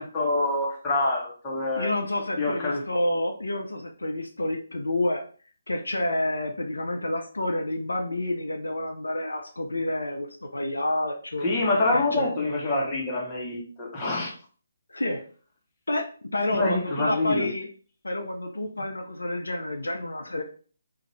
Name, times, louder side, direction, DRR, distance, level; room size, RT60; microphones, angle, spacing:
voice 1, 0.0-1.9 2.4-2.8 11.4-14.3 16.5-17.5, left 2 dB, 20° left, -5 dB, 1.0 m, -26 dB
voice 2, 1.8-5.2 5.7-11.5 11.9-12.3 14.9-15.2 15.9-17.7 18.0-20.4, left 1 dB, 75° left, 4 dB, 0.4 m, -29 dB
2.6 x 2.4 x 3.0 m, 0.40 s
figure-of-eight pair, 140°, 0 cm